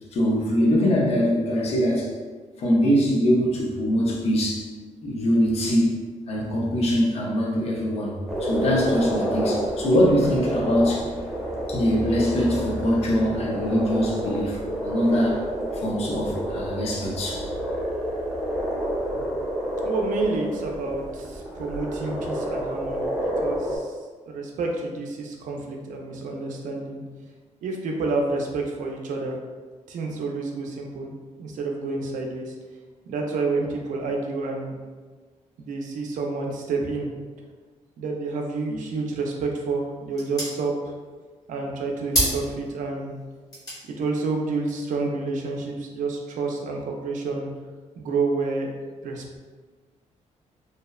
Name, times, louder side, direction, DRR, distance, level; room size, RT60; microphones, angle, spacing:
voice 1, 0.1-2.1 2.6-4.7 5.0-11.1 11.7-15.4 15.7-17.4, equal, 50° left, -2 dB, 0.5 m, -23 dB
sound 1, 8.3-23.8, equal, 5° right, 0.4 m, -29 dB
voice 2, 19.8-23.9 24.3-27.0 27.6-29.4 29.9-31.1 31.4-32.5 33.1-34.8 35.6-37.1 38.0-40.7 41.5-43.2 44.0-47.5 48.0-48.7 49.0-49.4, right 3 dB, 75° right, 1 dB, 0.4 m, -29 dB
sound 2, 39.1-45.9, equal, 30° left, 1.0 m, -34 dB
2.7 x 2.0 x 2.2 m, 1.4 s
cardioid pair, 145°, 13 cm